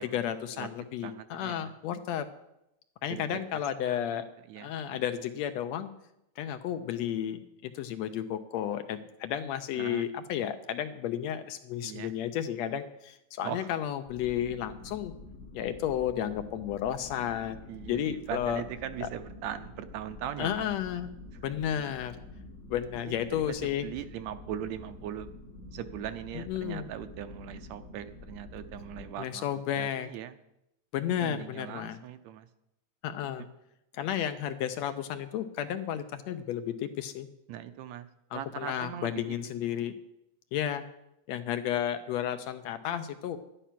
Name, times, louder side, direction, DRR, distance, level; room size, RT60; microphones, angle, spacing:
voice 1, 0.0-2.3 3.0-4.3 4.6-5.9 6.4-15.1 15.5-17.6 17.9-18.6 19.0-19.1 20.4-21.1 21.4-22.2 22.7-23.9 26.3-26.9 29.2-30.1 30.9-32.0 33.0-33.5 33.9-37.3 38.3-39.9 40.5-40.9 41.3-43.4, left 10 dB, 80° left, 9 dB, 1.8 m, -32 dB
voice 2, 1.0-1.7 3.1-4.2 4.5-5.0 9.7-10.1 11.8-12.1 13.4-13.7 17.7-20.7 23.0-25.3 25.7-29.5 29.8-30.4 31.2-32.5 37.5-38.1 38.3-39.2, right 10 dB, 75° right, 11 dB, 1.8 m, -40 dB
sound 1, 14.1-29.1, left 2 dB, 40° left, 1.0 m, -47 dB
11.5 x 10.0 x 5.9 m, 0.82 s
omnidirectional pair, 3.4 m